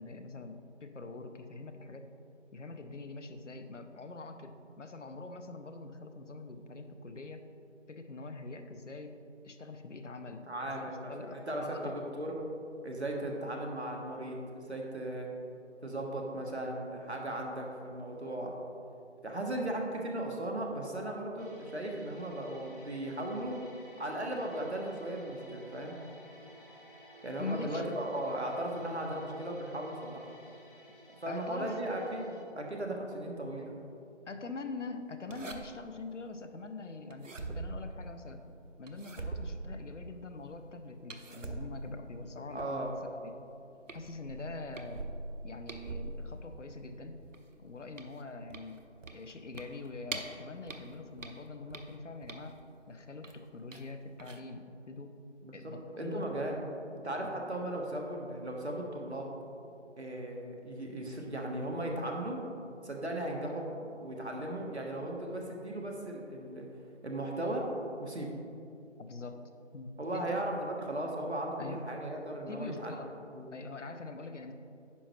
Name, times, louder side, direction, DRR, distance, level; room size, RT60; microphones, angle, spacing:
voice 1, 0.0-2.1 2.5-7.4 7.9-9.2 9.4-12.0 27.4-27.9 31.3-31.8 34.3-38.4 38.8-43.3 43.9-45.0 45.4-47.2 47.6-52.6 52.9-55.2 55.5-56.3 57.2-57.3 69.0-69.4 69.7-70.4 71.6-71.8 72.5-73.2 73.5-74.5, left 3 dB, 75° left, 8 dB, 0.8 m, -44 dB
voice 2, 10.5-12.4 12.8-15.3 15.8-18.5 19.2-23.6 24.0-26.0 27.2-30.2 31.2-33.8 42.5-42.9 55.4-55.5 56.0-56.6 57.0-59.3 60.0-62.4 62.8-66.7 67.0-67.7 68.0-68.3 70.0-73.0 73.3-73.5, right 1 dB, 60° right, 0 dB, 1.2 m, -37 dB
sound 1, 21.4-32.4, equal, 45° left, 1.0 m, -56 dB
sound 2, 35.3-36.0 37.1-38.4 38.9-40.2 41.1-43.0 43.5-43.6 43.9-46.8 47.2-50.4 50.7-52.7 53.2-53.9 54.2-54.4, right 3 dB, 90° right, 0.8 m, -43 dB
9.8 x 5.7 x 3.0 m, 2.6 s
figure-of-eight pair, 180°, 37 cm